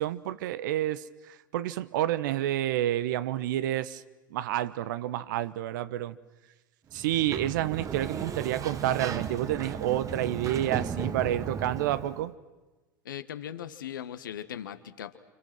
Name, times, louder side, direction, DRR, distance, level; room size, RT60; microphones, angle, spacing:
voice 1, 0.0-4.0 4.3-6.2 6.9-12.3, right 13 dB, 70° right, 16 dB, 1.0 m, -29 dB
Sliding door, 6.9-12.3, right 6 dB, 30° right, 1.5 m, -35 dB
voice 2, 13.0-15.2, left 10 dB, 80° left, 11 dB, 1.4 m, -39 dB
30.0 x 26.5 x 6.1 m, 1.2 s
hypercardioid pair, 85°, 11 cm